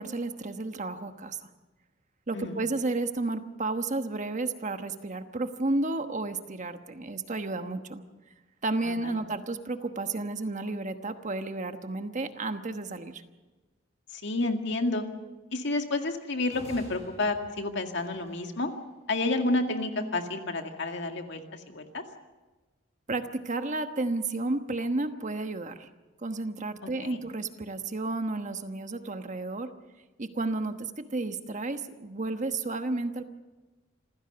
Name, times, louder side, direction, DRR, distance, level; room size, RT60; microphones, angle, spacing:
voice 1, 0.0-1.4 2.3-8.0 8.6-13.1 23.1-25.9 26.2-29.7 30.2-33.2, right 2 dB, 40° right, 8 dB, 1.2 m, -32 dB
voice 2, 8.8-9.2 14.1-15.0 15.5-18.7 19.1-21.4 21.7-22.0 27.0-27.2, left 2 dB, 65° left, 5 dB, 2.1 m, -30 dB
sound 1, 16.5-18.7, equal, 35° left, 7.5 m, -49 dB
26.5 x 16.0 x 6.9 m, 1.2 s
head